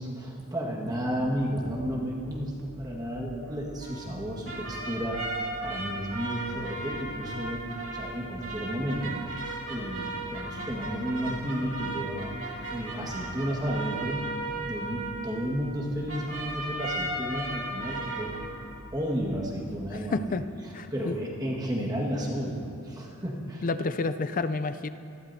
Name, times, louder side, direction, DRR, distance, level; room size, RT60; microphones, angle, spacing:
voice 1, 0.0-9.2 9.7-12.3 12.7-18.4 18.9-20.4 20.9-23.6, equal, 20° right, -3 dB, 1.7 m, -32 dB
sound 1, 1.0-19.9, equal, 80° right, 3.0 m, -49 dB
sound 2, 3.8-15.8 16.1-18.4, right 2 dB, 60° right, 2.5 m, -36 dB
voice 2, 19.9-20.4 20.7-21.2 23.6-24.9, left 3 dB, 40° left, 11 dB, 0.4 m, -30 dB
26.0 x 12.0 x 2.8 m, 2.6 s
head